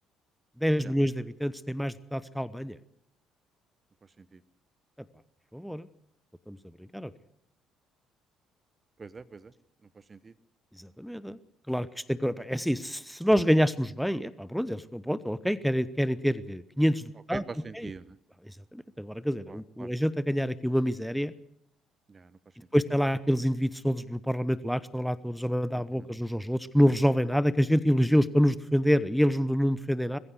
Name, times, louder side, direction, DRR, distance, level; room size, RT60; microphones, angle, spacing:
voice 1, 0.6-2.8 5.5-5.9 6.5-6.6 6.9-7.1 10.8-11.4 11.7-17.4 17.8-17.9 18.7-21.3 22.7-30.2, equal, ahead, 16 dB, 0.9 m, -27 dB
voice 2, 4.0-4.4 9.0-9.5 9.8-10.3 17.3-18.2 19.5-19.9 22.1-22.4 25.7-26.1, right 4 dB, 30° right, 17 dB, 1.0 m, -44 dB
21.0 x 15.5 x 8.1 m, 0.75 s
hypercardioid pair, 50°, 0 cm